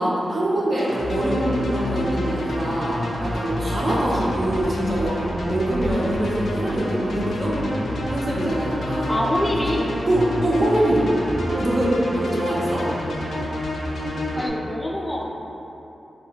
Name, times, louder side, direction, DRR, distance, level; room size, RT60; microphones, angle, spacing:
voice 1, 0.0-9.1 10.1-11.1 11.5-12.8, right 1 dB, 55° right, -5 dB, 0.6 m, -24 dB
sound 1, 0.8-14.5, left 1 dB, 80° left, 0.4 m, -28 dB
voice 2, 9.1-9.9 14.4-15.2, left 1 dB, 15° left, -2 dB, 0.4 m, -25 dB
3.6 x 2.2 x 2.2 m, 2.9 s
supercardioid pair, 40°, 0 cm